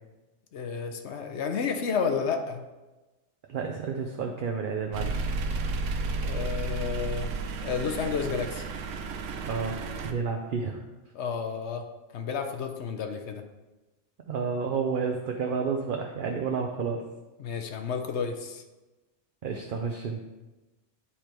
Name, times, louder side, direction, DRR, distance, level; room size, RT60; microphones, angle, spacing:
voice 1, 0.5-2.6 6.2-7.4 7.6-8.6 11.1-11.9 12.1-13.4 17.4-18.6, left 6 dB, 70° left, 5 dB, 1.0 m, -31 dB
voice 2, 3.5-5.3 9.4-10.8 14.3-17.1 19.4-20.2, right 5 dB, 55° right, 3 dB, 0.7 m, -30 dB
sound 1, 4.9-10.1, right 3 dB, 85° right, 1.0 m, -32 dB
10.0 x 3.3 x 4.4 m, 1.1 s
omnidirectional pair, 1.2 m